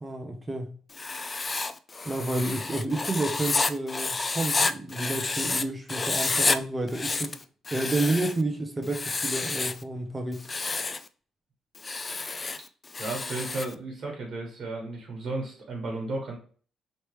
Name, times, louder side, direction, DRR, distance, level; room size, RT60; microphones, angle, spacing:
voice 1, 0.0-0.8 2.1-7.3 7.7-10.5, right 2 dB, 20° right, 0.6 m, -30 dB
Writing, 0.9-5.6 5.9-6.6 6.9-8.4 8.9-9.8 10.3-11.0 11.7-13.7, left 3 dB, 30° left, 0.3 m, -29 dB
voice 2, 13.0-16.4, right 2 dB, 60° right, 1.3 m, -34 dB
3.2 x 3.0 x 3.1 m
cardioid pair, 90°, 0 cm